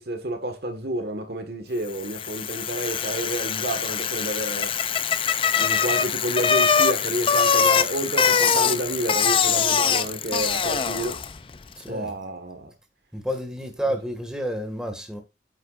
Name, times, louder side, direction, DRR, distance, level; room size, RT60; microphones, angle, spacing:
voice 1, 0.0-4.7 5.6-11.2 11.9-12.7 13.9-14.0, right 1 dB, 60° right, 1.5 m, -30 dB
Bicycle, 2.0-11.4, left 6 dB, 30° left, 0.4 m, -23 dB
voice 2, 11.8-12.1 13.1-15.2, equal, 5° right, 1.8 m, -30 dB
9.5 x 8.0 x 2.5 m
head